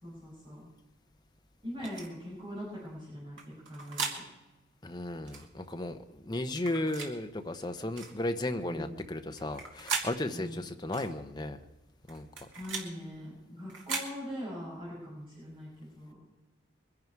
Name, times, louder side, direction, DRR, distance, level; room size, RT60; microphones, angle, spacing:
voice 1, 0.0-0.7 1.6-4.1 8.6-8.9 10.3-10.6 12.6-16.2, equal, 25° right, -7 dB, 6.3 m, -42 dB
sound 1, 1.8-2.1 3.4-4.2 5.3-5.5 6.6-7.1 8.0-8.2 9.4-10.1 10.9-11.1 12.1-12.9 13.7-14.1, right 5 dB, 75° right, 2.5 m, -37 dB
voice 2, 4.8-11.6 12.1-12.3, left 1 dB, 20° left, 6 dB, 0.8 m, -35 dB
23.0 x 11.0 x 4.7 m, 1.1 s
head